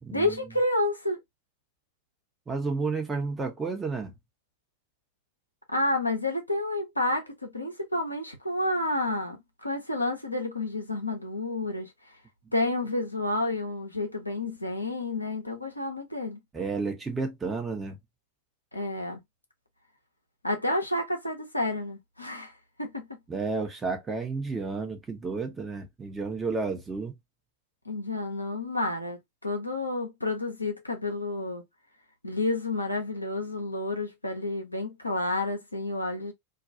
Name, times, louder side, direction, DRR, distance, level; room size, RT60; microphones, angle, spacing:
voice 1, 0.1-1.2 5.7-11.9 12.5-16.4 18.7-19.2 20.4-22.5 22.8-23.1 27.9-31.6 32.2-36.3, left 2 dB, 85° left, 0.6 m, -30 dB
voice 2, 2.5-4.1 16.5-18.0 23.3-27.1, right 4 dB, 15° right, 0.7 m, -31 dB
2.3 x 2.3 x 2.6 m
figure-of-eight pair, 90°, 0 cm